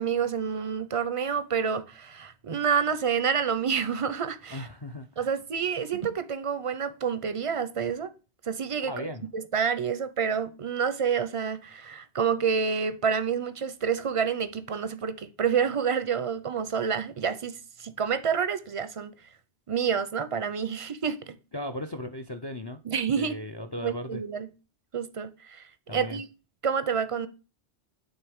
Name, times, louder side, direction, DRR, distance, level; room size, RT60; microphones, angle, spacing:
voice 1, 0.0-4.7 5.2-8.1 8.5-19.1 19.7-21.4 22.8-23.4 23.8-24.5 24.9-26.3 26.6-27.3, right 6 dB, 40° right, 0.5 m, -28 dB
voice 2, 4.5-5.3 8.8-9.3 21.5-22.8 23.2-24.2 25.9-26.2, left 1 dB, 40° left, 0.4 m, -37 dB
9.0 x 3.7 x 3.5 m
omnidirectional pair, 1.2 m